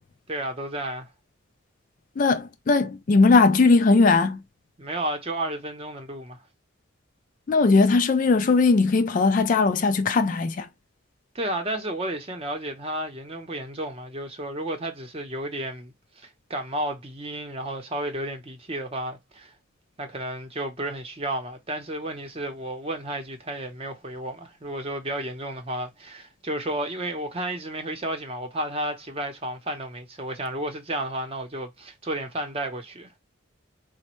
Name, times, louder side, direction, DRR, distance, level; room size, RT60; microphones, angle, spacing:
voice 1, 0.3-1.1 4.8-6.4 11.3-19.5 20.0-33.2, right 1 dB, 25° right, 0.7 m, -32 dB
voice 2, 2.2-4.4 7.5-10.7, left 3 dB, 40° left, 0.3 m, -19 dB
4.1 x 2.1 x 3.0 m
head